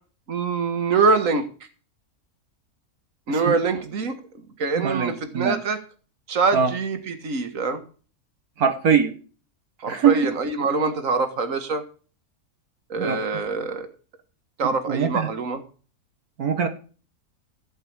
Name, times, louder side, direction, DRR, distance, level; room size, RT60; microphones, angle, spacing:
voice 1, 0.3-1.5 3.3-4.1 4.6-5.8 6.3-7.8 9.8-11.8 12.9-13.9 14.6-15.6, right 4 dB, 60° right, 9 dB, 2.0 m, -24 dB
voice 2, 4.8-5.6 6.5-6.7 8.6-9.1 9.9-10.1 13.0-13.2 14.9-15.3 16.4-16.7, right 7 dB, 80° right, 6 dB, 1.8 m, -21 dB
15.0 x 5.6 x 8.7 m, 0.38 s
omnidirectional pair, 1.6 m